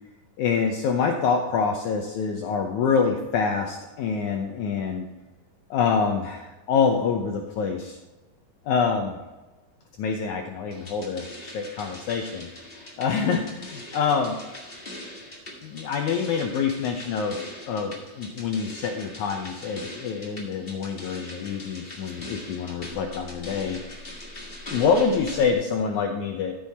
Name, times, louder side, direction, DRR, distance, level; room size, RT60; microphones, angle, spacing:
voice 1, 0.4-5.1 5.7-8.0 8.7-9.2 10.0-12.5 13.0-14.4 15.6-17.4 17.7-23.8 24.7-26.5, left 5 dB, 75° left, 3 dB, 2.0 m, -26 dB
sound 1, 10.7-25.5, left 1 dB, 30° left, 1.1 m, -41 dB
14.0 x 6.5 x 4.2 m, 1.1 s
omnidirectional pair, 4.0 m